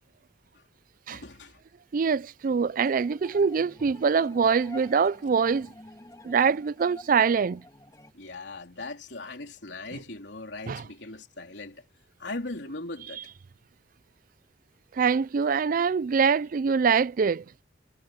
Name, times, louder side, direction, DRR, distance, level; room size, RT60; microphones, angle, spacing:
voice 1, 1.1-1.6 8.1-11.8 12.2-13.2, left 2 dB, 75° left, 3.7 m, -39 dB
voice 2, 1.9-5.7 6.2-7.6 10.7-10.9 13.2-13.3 14.9-17.4, right 6 dB, 50° right, 0.4 m, -24 dB
sound 1, 2.8-8.1, left 1 dB, 20° left, 2.4 m, -49 dB
head